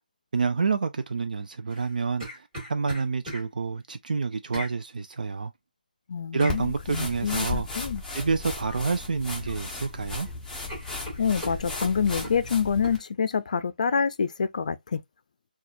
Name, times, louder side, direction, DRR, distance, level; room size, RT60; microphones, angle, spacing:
voice 1, 0.3-5.5 6.3-7.7 8.1-10.3, right 4 dB, 60° right, 0.4 m, -28 dB
sound 1, 1.7-3.4 4.5-4.7 6.4-6.6 8.6-8.9 9.2-9.9 10.2-10.3 10.7-12.4 12.8-13.0, equal, 15° right, 2.6 m, -39 dB
voice 2, 6.1-8.0 11.2-15.0, left 6 dB, 50° left, 0.5 m, -27 dB
sound 2, 6.5-13.0, left 3 dB, 5° left, 0.8 m, -35 dB
4.1 x 2.4 x 2.6 m
figure-of-eight pair, 155°, 5 cm